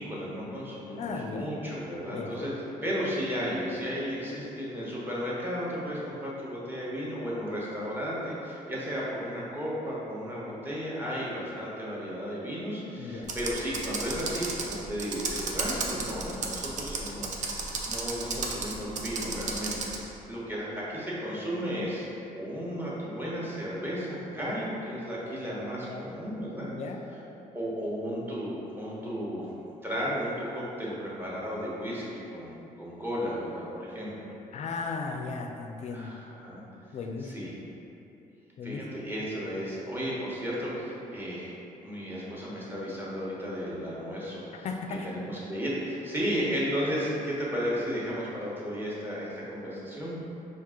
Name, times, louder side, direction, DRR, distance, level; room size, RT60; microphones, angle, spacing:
voice 1, 0.0-2.5 2.8-22.1 22.3-26.7 27.5-29.5 29.8-34.3 35.9-36.6 37.2-37.5 38.6-41.5 41.8-44.7 45.0-50.2, equal, 15° right, -7 dB, 1.0 m, -34 dB
voice 2, 1.0-1.5 2.1-2.5 13.0-13.3 25.9-26.0 26.6-27.0 34.5-36.1 36.9-37.5 38.6-38.8 39.2-39.3 44.6-45.2, left 4 dB, 50° left, 3 dB, 0.4 m, -36 dB
Computer keyboard, 13.2-20.0, right 4 dB, 55° right, 0.5 m, -34 dB
4.6 x 2.5 x 3.7 m, 2.9 s
cardioid pair, 110°, 15 cm